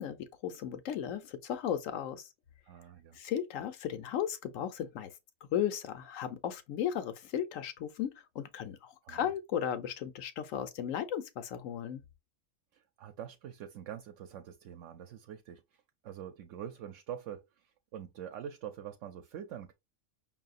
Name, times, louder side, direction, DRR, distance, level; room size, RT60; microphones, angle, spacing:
voice 1, 0.0-2.3 3.1-5.1 5.5-12.0, left 9 dB, 85° left, 1.1 m, -35 dB
voice 2, 2.7-3.2 9.0-9.3 12.7-15.6 16.0-19.7, right 9 dB, 75° right, 0.9 m, -45 dB
5.5 x 2.7 x 2.5 m
omnidirectional pair, 1.3 m